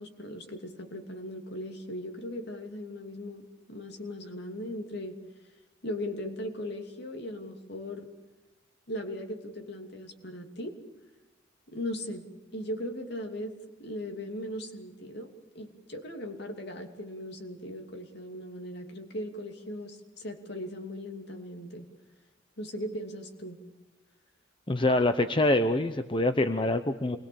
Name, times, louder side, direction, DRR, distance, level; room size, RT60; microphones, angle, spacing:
voice 1, 0.0-5.1 5.8-8.1 8.9-10.7 11.7-12.2 12.5-21.9 22.6-23.6, left 1 dB, 60° left, 4 dB, 2.9 m, -38 dB
voice 2, 24.7-27.2, left 2 dB, 25° left, 8 dB, 0.8 m, -25 dB
27.5 x 21.0 x 7.1 m, 1.1 s
head